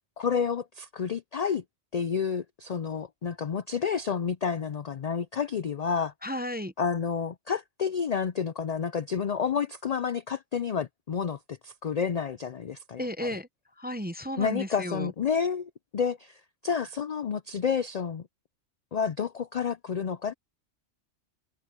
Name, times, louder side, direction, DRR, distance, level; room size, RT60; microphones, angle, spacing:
voice 1, 0.2-1.6 1.9-6.1 6.8-13.3 14.4-18.2 18.9-20.3, left 6 dB, 70° left, 0.4 m, -30 dB
voice 2, 6.2-6.7 13.0-13.5 13.8-15.1, equal, 10° right, 0.5 m, -33 dB
omnidirectional pair, 1.3 m